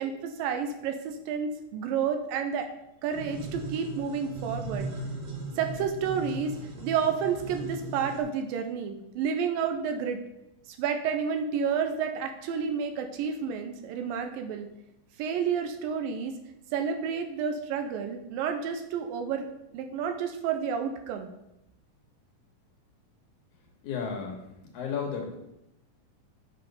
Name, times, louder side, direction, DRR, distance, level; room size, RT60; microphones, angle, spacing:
voice 1, 0.0-2.7 3.0-4.9 5.6-6.6 6.8-10.2 10.8-14.7 15.2-16.3 16.7-21.3, right 7 dB, 85° right, 6 dB, 2.3 m, -30 dB
sound 1, 3.1-8.2, right 2 dB, 50° right, 1.6 m, -38 dB
voice 2, 23.8-24.4 24.7-25.4, left 6 dB, 65° left, 1 dB, 2.2 m, -32 dB
6.9 x 6.0 x 5.3 m, 0.87 s
omnidirectional pair, 4.1 m